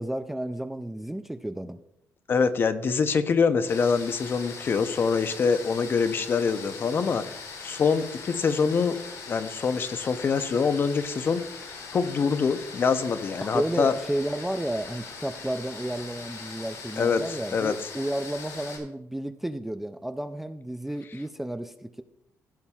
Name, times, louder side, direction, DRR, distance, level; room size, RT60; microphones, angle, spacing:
voice 1, 0.0-1.8 13.4-22.0, right 1 dB, 5° right, 9 dB, 0.3 m, -32 dB
voice 2, 2.3-9.0 9.3-11.5 11.9-13.9 17.0-17.7, left 5 dB, 40° left, 11 dB, 0.6 m, -25 dB
sound 1, 3.7-18.8, left 4 dB, 75° left, 2.8 m, -41 dB
15.0 x 7.2 x 2.3 m, 0.78 s
cardioid pair, 145°, 6 cm